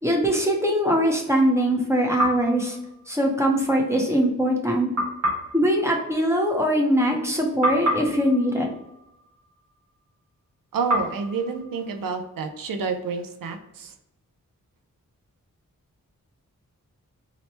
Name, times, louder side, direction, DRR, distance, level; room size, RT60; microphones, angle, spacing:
voice 1, 0.0-2.8 3.1-4.9 5.5-8.7, equal, 10° right, -1 dB, 0.6 m, -22 dB
sound 1, 2.2-3.5 4.9-7.3 7.6-9.9 10.9-12.7, equal, 55° right, 1.2 m, -31 dB
voice 2, 10.7-13.9, right 5 dB, 80° right, 6 dB, 0.5 m, -29 dB
2.9 x 2.1 x 4.2 m, 0.86 s
wide cardioid pair, 100°, 33 cm